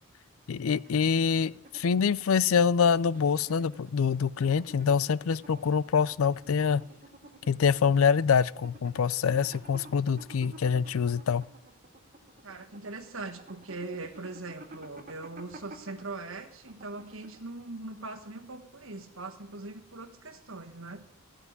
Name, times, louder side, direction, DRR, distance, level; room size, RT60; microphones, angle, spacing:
voice 1, 0.5-6.8 7.5-11.4, left 6 dB, 65° left, 0.4 m, -25 dB
sound 1, 0.8-17.6, right 1 dB, 40° right, 1.9 m, -52 dB
voice 2, 12.4-21.0, right 3 dB, 65° right, 1.5 m, -41 dB
15.5 x 5.8 x 9.4 m
head